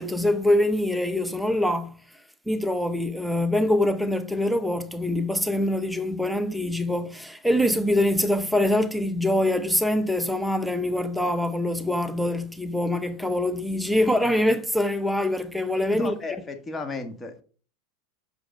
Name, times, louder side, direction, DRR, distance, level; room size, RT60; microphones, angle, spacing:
voice 1, 0.0-1.9 2.5-16.1, left 1 dB, ahead, 0.7 m, -24 dB
voice 2, 15.9-17.4, left 4 dB, 20° left, 1.5 m, -34 dB
6.7 x 5.0 x 4.5 m
hypercardioid pair, 100°, 0 cm